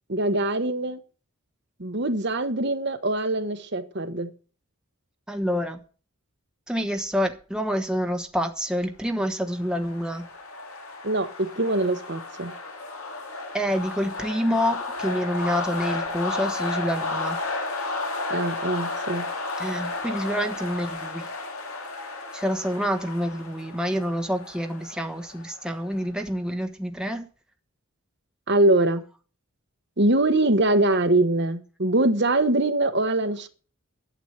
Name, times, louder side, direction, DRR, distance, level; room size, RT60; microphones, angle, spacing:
voice 1, 0.1-1.0 1.8-4.3 11.0-12.5 18.3-19.3 28.5-29.0 30.0-33.5, right 2 dB, 50° right, 1.2 m, -23 dB
voice 2, 5.3-5.8 6.7-10.3 13.5-17.4 19.6-21.3 22.3-27.3, equal, 5° right, 1.1 m, -27 dB
sound 1, 9.3-26.0, left 3 dB, 80° left, 3.2 m, -33 dB
12.0 x 8.1 x 8.0 m
head